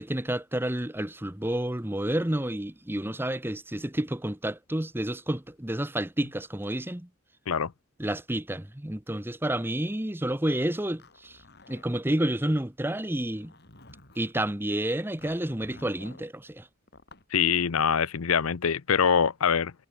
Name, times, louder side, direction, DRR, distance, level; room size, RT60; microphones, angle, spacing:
voice 1, 0.0-7.1 8.0-11.4 11.7-13.5 14.2-16.7, right 1 dB, 10° right, 1.0 m, -30 dB
Zipper (clothing), 10.8-12.3 13.1-14.4 15.2-16.3 16.9-17.3, left 2 dB, 50° left, 4.8 m, -52 dB
voice 2, 17.3-19.7, left 7 dB, 80° left, 0.7 m, -24 dB
head